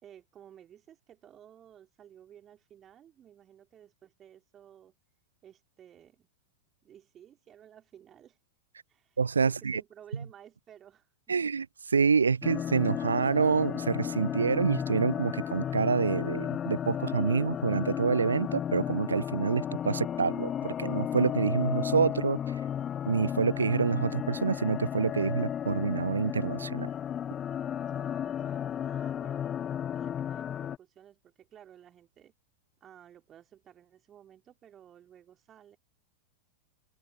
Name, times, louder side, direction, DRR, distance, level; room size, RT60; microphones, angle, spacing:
voice 1, 0.0-4.9 5.4-6.3 6.8-8.4 8.9-11.4 27.9-29.5 29.9-32.3 32.8-35.8, right 10 dB, 25° right, 4.4 m, -55 dB
voice 2, 9.2-9.8 11.3-22.4 23.1-26.9, right 5 dB, 75° right, 0.4 m, -27 dB
sound 1, 12.4-30.8, left 9 dB, 25° left, 0.7 m, -34 dB
open air
figure-of-eight pair, 90°, 0 cm